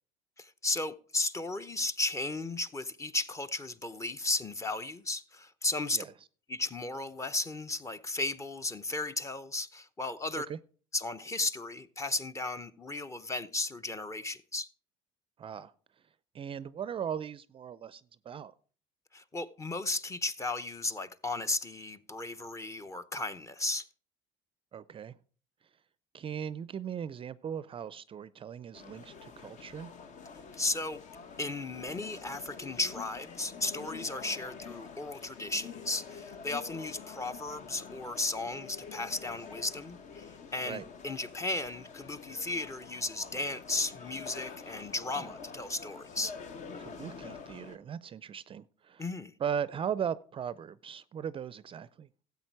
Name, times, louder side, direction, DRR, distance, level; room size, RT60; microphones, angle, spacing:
voice 1, 0.4-6.1 6.5-10.5 10.9-14.7 19.1-23.9 30.5-31.0 31.4-46.4 49.0-49.3, left 2 dB, 20° left, 0.8 m, -35 dB
voice 2, 15.4-15.7 16.3-18.5 24.7-25.1 26.1-29.9 40.6-40.8 45.2-45.3 46.8-49.0 49.4-52.1, right 8 dB, 35° right, 0.5 m, -38 dB
sound 1, 28.7-47.8, left 5 dB, 50° left, 1.2 m, -47 dB
13.0 x 8.2 x 4.6 m
supercardioid pair, 95°, 16 cm